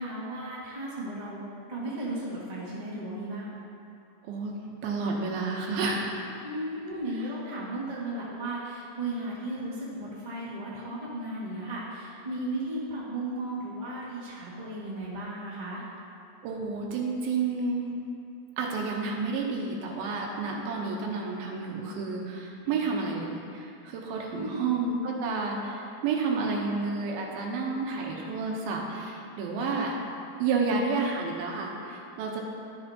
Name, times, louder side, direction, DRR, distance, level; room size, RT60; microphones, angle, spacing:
voice 1, 0.0-1.4 1.7-3.5 6.4-15.8 24.3-24.6 29.6-29.7, right 1 dB, 25° right, -8 dB, 0.8 m, -35 dB
voice 2, 4.8-6.1 16.4-17.8 18.6-30.0 30.4-32.4, right 4 dB, 90° right, -1 dB, 2.8 m, -30 dB
12.0 x 6.7 x 2.9 m, 2.7 s
omnidirectional pair, 4.2 m